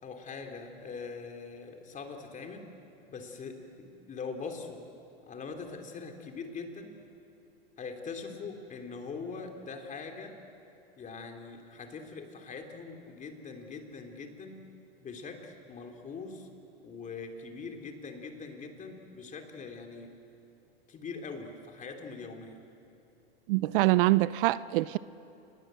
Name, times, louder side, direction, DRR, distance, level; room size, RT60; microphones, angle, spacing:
voice 1, 0.0-2.7 3.1-4.8 5.2-6.9 7.8-10.3 11.0-14.6 15.0-16.5 16.8-20.1 20.9-22.6, left 4 dB, 25° left, 3.4 m, -42 dB
voice 2, 23.5-25.0, right 18 dB, 60° right, 0.6 m, -24 dB
28.0 x 21.0 x 7.8 m
hypercardioid pair, 115°, 30 cm